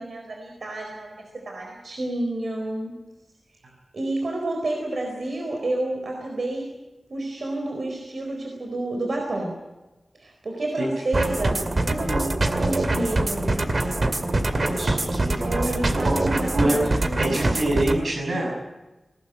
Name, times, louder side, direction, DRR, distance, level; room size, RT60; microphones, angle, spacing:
voice 1, 0.0-2.9 3.9-6.7 7.1-9.6 10.2-13.7 15.4-17.6, right 1 dB, 65° right, 1 dB, 4.4 m, -30 dB
sound 1, 11.1-18.0, right 2 dB, 45° right, 2.3 m, -24 dB
voice 2, 14.5-16.8 17.2-18.5, right 1 dB, 85° right, -2 dB, 6.5 m, -26 dB
20.0 x 19.5 x 9.1 m, 1.1 s
wide cardioid pair, 100°, 0 cm